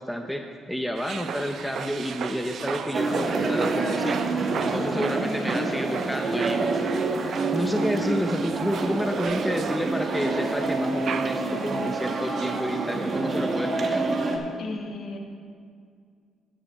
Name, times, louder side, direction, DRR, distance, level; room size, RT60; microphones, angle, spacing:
voice 1, 0.0-4.2 4.6-6.7 7.5-14.1, equal, ahead, 4 dB, 0.6 m, -30 dB
sound 1, 1.0-12.6, right 7 dB, 65° right, 0.3 m, -36 dB
sound 2, 2.9-14.4, right 3 dB, 45° right, 1.2 m, -27 dB
voice 2, 4.9-5.6 14.5-15.2, left 3 dB, 65° left, 2 dB, 1.3 m, -34 dB
12.5 x 9.9 x 3.0 m, 2.1 s
cardioid pair, 90°, 0 cm